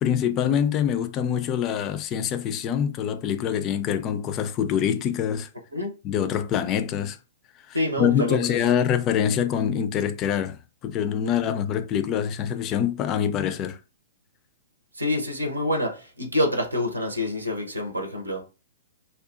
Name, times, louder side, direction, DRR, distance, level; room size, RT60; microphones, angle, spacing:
voice 1, 0.0-5.5 6.0-7.2 7.7-13.8, left 9 dB, 30° left, 0.3 m, -25 dB
voice 2, 7.7-8.8 14.9-18.4, left 1 dB, 90° right, 0.7 m, -27 dB
2.6 x 2.3 x 2.4 m
figure-of-eight pair, 115°, 0 cm